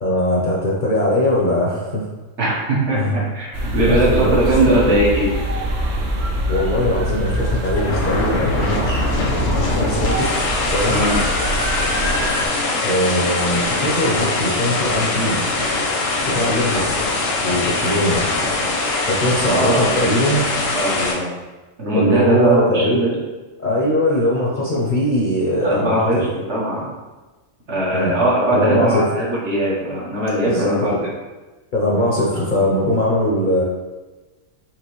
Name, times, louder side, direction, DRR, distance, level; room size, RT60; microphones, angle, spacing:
voice 1, 0.0-2.1 3.0-3.2 3.8-4.4 4.6-4.9 6.5-9.1 9.8-10.3 10.7-11.0 12.8-15.4 16.2-16.9 17.4-18.2 19.1-20.4 21.9-23.0 23.6-26.3 27.9-28.1 28.5-29.0 30.4-31.0 31.7-33.6, left 1 dB, 50° left, -4 dB, 0.7 m, -20 dB
voice 2, 2.4-5.3 10.9-11.2 19.4-21.3 21.8-23.2 25.6-26.8 27.7-31.1, right 1 dB, 60° right, -5 dB, 1.4 m, -20 dB
sound 1, 3.5-12.5, right 1 dB, 80° right, 1.0 m, -24 dB
sound 2, 7.3-21.1, left 3 dB, 80° left, 1.2 m, -22 dB
4.8 x 2.9 x 3.0 m, 1.2 s
omnidirectional pair, 1.3 m